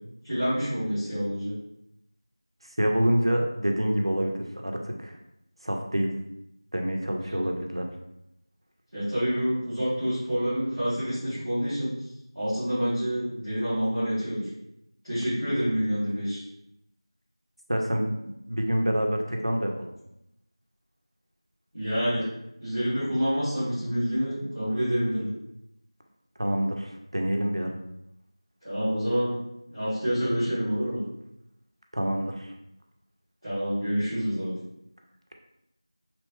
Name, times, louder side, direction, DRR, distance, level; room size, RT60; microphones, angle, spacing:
voice 1, 0.2-1.5 7.2-7.4 8.9-11.9 12.3-14.4 15.0-16.4 21.7-22.2 22.6-25.3 28.6-29.4 29.7-31.0 33.4-34.5, equal, ahead, -31 dB, 0.6 m, -27 dB
voice 2, 2.8-5.2 5.6-6.1 6.7-7.9 17.7-19.9 26.4-27.7 31.9-32.5, equal, 70° right, 2 dB, 0.5 m, -27 dB
2.9 x 2.0 x 3.1 m, 0.81 s
figure-of-eight pair, 180°, 3 cm